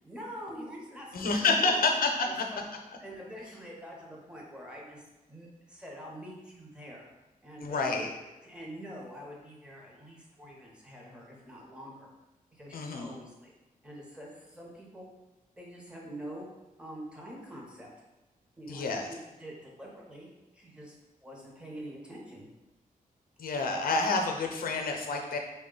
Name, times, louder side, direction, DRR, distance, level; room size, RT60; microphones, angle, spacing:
voice 1, 0.0-1.1 1.4-1.9 2.2-2.6 3.0-5.0 5.3-7.1 7.4-8.1 8.4-12.1 12.5-13.5 13.8-15.1 15.6-16.5 16.8-17.9 18.6-20.3 20.5-20.9 21.2-22.5, equal, 5° right, -3 dB, 0.8 m, -45 dB
voice 2, 1.1-2.3 7.6-8.1 12.7-13.2 18.7-19.1 23.4-25.4, left 3 dB, 80° left, 3 dB, 0.5 m, -28 dB
3.5 x 2.2 x 3.7 m, 1.0 s
wide cardioid pair, 120°, 15 cm